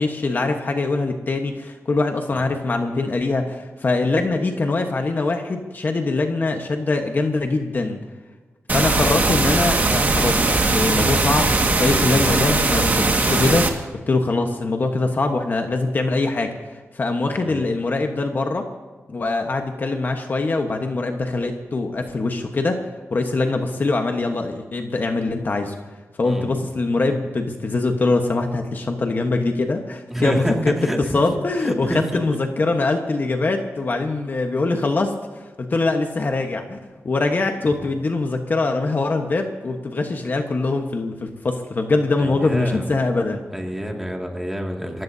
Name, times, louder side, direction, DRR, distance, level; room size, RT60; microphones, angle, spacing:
voice 1, 0.0-8.0 8.7-13.8 14.1-18.6 19.1-22.8 23.1-25.7 26.2-36.8 37.0-43.4, left 3 dB, 40° left, 4 dB, 1.2 m, -23 dB
sound 1, 8.7-13.7, right 3 dB, 35° right, 1.8 m, -19 dB
voice 2, 26.2-26.7 30.1-30.5 30.8-31.2 31.7-32.0 42.2-42.9 43.5-45.0, equal, 5° right, 0 dB, 2.2 m, -28 dB
29.5 x 15.5 x 2.8 m, 1.4 s
wide cardioid pair, 175°, 5 cm